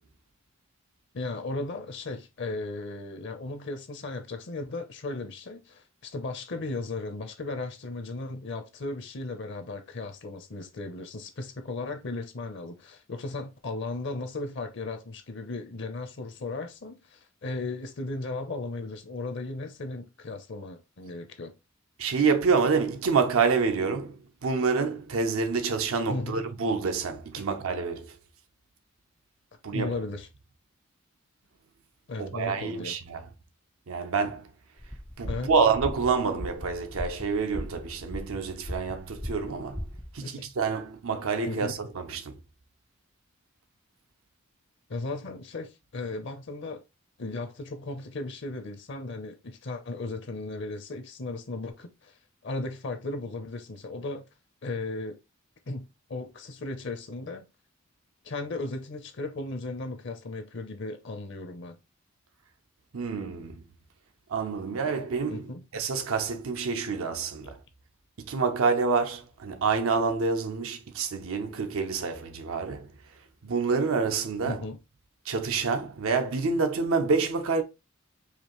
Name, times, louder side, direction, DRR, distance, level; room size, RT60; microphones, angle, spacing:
voice 1, 1.1-21.5 26.1-26.4 27.4-27.5 29.7-30.3 32.1-33.0 35.3-35.5 40.2-40.4 41.5-41.7 44.9-46.8 47.2-54.2 54.6-55.2 55.7-57.4 58.2-61.8 65.3-65.6 74.5-74.8, left 2 dB, 60° left, 0.7 m, -36 dB
voice 2, 22.0-24.1 24.4-28.1 29.6-29.9 32.2-33.2 33.9-34.4 35.2-39.8 40.1-42.3 62.9-63.6 64.3-65.4 65.7-67.6 68.2-72.9 73.4-74.6 75.3-77.6, right 5 dB, 85° right, 0.6 m, -27 dB
sound 1, 34.8-40.2, equal, 5° left, 0.3 m, -38 dB
5.0 x 2.5 x 3.0 m
head